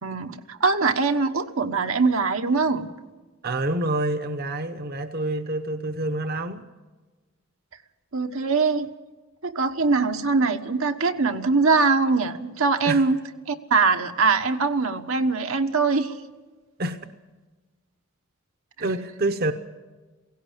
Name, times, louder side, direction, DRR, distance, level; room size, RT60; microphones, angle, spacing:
voice 1, 0.0-2.9 8.1-8.9 9.4-13.2 13.5-16.2, right 4 dB, 75° right, 5 dB, 1.3 m, -22 dB
voice 2, 3.4-6.6 12.8-13.1 16.8-17.0 18.8-19.5, right 2 dB, 45° right, 9 dB, 0.9 m, -27 dB
17.5 x 16.5 x 8.9 m, 1.3 s
head